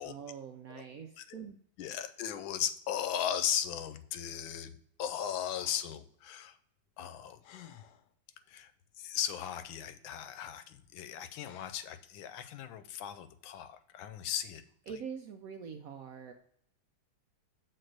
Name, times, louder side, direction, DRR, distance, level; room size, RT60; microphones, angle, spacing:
voice 1, 0.0-1.6 14.9-16.3, right 7 dB, 70° right, 5 dB, 0.8 m, -44 dB
voice 2, 1.2-1.5 1.8-6.6 7.0-7.4 8.5-8.7 9.0-15.0, left 10 dB, 90° left, 11 dB, 1.4 m, -37 dB
Breathing, 5.4-5.9 7.1-7.2 7.4-8.1 8.8-9.8 11.4-11.9, left 10 dB, 70° left, 1.1 m, -55 dB
6.7 x 4.3 x 6.4 m, 0.65 s
omnidirectional pair, 2.1 m